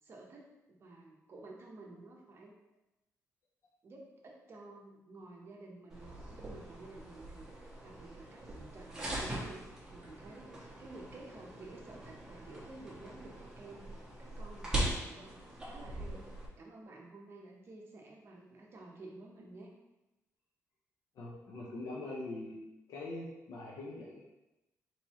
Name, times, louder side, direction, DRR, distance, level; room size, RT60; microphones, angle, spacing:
voice 1, 0.0-2.5 3.8-13.9 14.2-16.3 16.6-19.7, right 2 dB, 45° right, -1 dB, 1.0 m, -52 dB
sound 1, 5.9-16.5, right 1 dB, 10° right, 1.3 m, -41 dB
voice 2, 21.2-22.6 22.9-24.2, left 2 dB, 80° left, -4 dB, 0.8 m, -43 dB
4.4 x 3.9 x 3.0 m, 0.96 s
cardioid pair, 135°, 6 cm